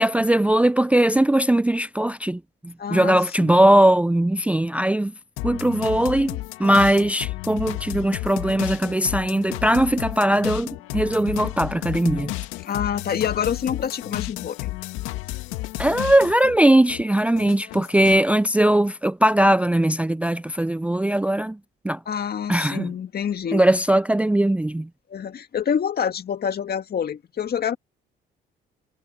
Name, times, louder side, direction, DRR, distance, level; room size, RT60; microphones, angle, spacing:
voice 1, 0.0-5.1 5.4-10.7 10.9-12.3 15.8-21.6 21.8-22.0 22.5-22.9 23.5-24.9, right 1 dB, 5° right, 0.5 m, -20 dB
voice 2, 2.8-3.6 11.6-11.8 12.6-14.7 22.1-23.6 25.1-27.8, left 8 dB, 50° left, 2.0 m, -27 dB
sound 1, 5.4-16.6 16.9-18.3, left 18 dB, 85° left, 2.3 m, -32 dB
supercardioid pair, 65°, 20 cm